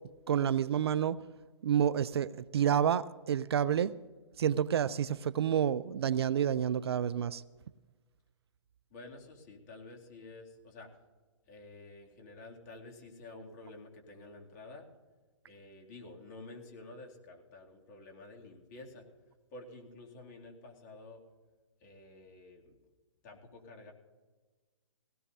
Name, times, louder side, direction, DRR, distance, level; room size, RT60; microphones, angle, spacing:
voice 1, 0.3-1.2 1.6-4.0 4.4-7.4, right 9 dB, 55° right, 19 dB, 0.4 m, -29 dB
voice 2, 8.9-11.0 11.5-14.9 15.5-19.0 19.5-21.2 21.8-22.8 23.2-23.9, left 2 dB, 35° left, 1 dB, 2.6 m, -50 dB
20.0 x 17.0 x 2.7 m, 1.3 s
hypercardioid pair, 135°, 16 cm